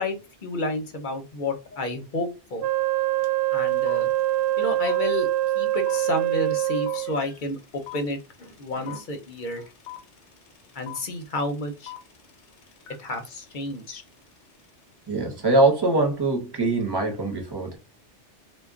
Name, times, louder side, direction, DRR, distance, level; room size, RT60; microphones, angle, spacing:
voice 1, 0.0-2.7 3.5-4.1 4.6-5.3 5.5-9.7 10.7-11.9 13.0-14.0, left 2 dB, 50° left, 0.7 m, -31 dB
Wind instrument woodwind instrument, 2.6-7.2, right 15 dB, 65° right, 0.7 m, -24 dB
sound 1, 3.2-3.3 3.5-14.7, left 14 dB, 80° left, 0.9 m, -44 dB
voice 2, 15.1-17.8, right 2 dB, 25° right, 0.7 m, -22 dB
2.2 x 2.2 x 3.6 m
omnidirectional pair, 1.2 m